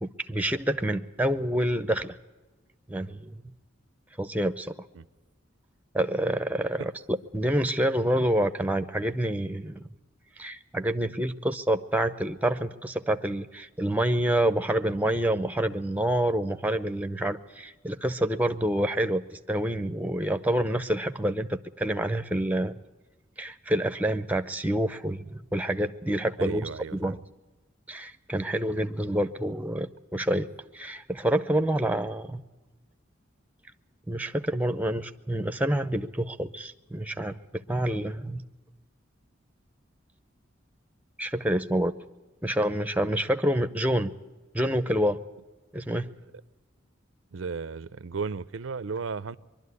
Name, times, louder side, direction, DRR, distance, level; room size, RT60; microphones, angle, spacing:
voice 1, 0.0-2.2 2.9-3.4 4.2-4.8 5.9-9.8 10.4-22.7 23.4-27.2 27.9-30.5 30.7-32.4 34.1-38.4 41.2-41.9 42.4-44.1 44.5-45.2 45.7-46.1, right 1 dB, 10° right, 0.6 m, -27 dB
voice 2, 26.4-27.2 47.3-49.4, right 5 dB, 80° right, 0.5 m, -34 dB
23.0 x 12.0 x 9.5 m
head